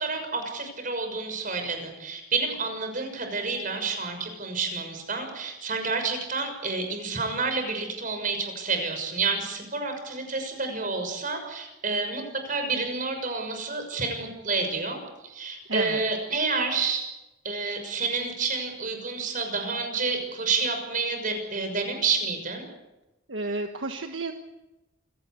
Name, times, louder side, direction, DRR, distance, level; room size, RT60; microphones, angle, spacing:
voice 1, 0.0-17.0 17.4-22.7, right 4 dB, 45° right, 6 dB, 6.4 m, -29 dB
voice 2, 15.7-16.0 23.3-24.3, right 2 dB, 70° right, 5 dB, 1.5 m, -30 dB
27.5 x 17.5 x 8.2 m, 0.99 s
head